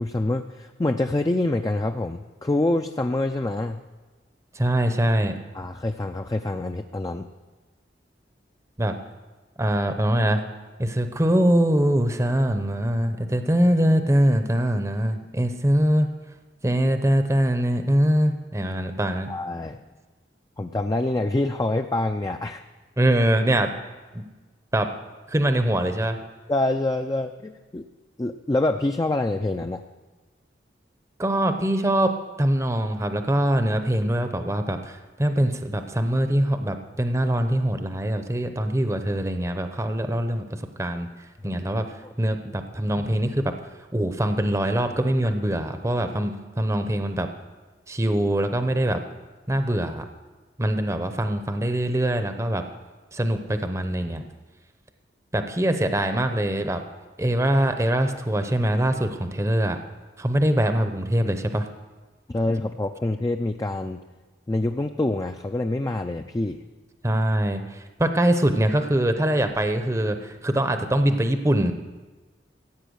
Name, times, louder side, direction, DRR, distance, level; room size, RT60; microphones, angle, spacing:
voice 1, 0.0-3.8 5.5-7.3 19.3-19.8 20.6-22.6 26.5-27.9 28.2-29.8 41.4-41.6 42.0-42.1 62.3-64.0 64.5-66.6, left 2 dB, 20° left, 6 dB, 0.4 m, -26 dB
voice 2, 4.5-5.4 8.8-9.0 9.6-10.4 10.8-16.1 16.6-19.3 23.0-23.7 24.1-24.2 24.7-24.9 25.3-26.2 31.2-43.5 43.9-47.3 47.9-49.0 49.5-50.1 50.6-52.6 53.1-54.2 55.3-56.8 57.2-59.8 60.2-61.7 67.0-71.7, right 1 dB, 15° right, 7 dB, 0.7 m, -23 dB
15.5 x 8.6 x 6.4 m, 1.3 s
head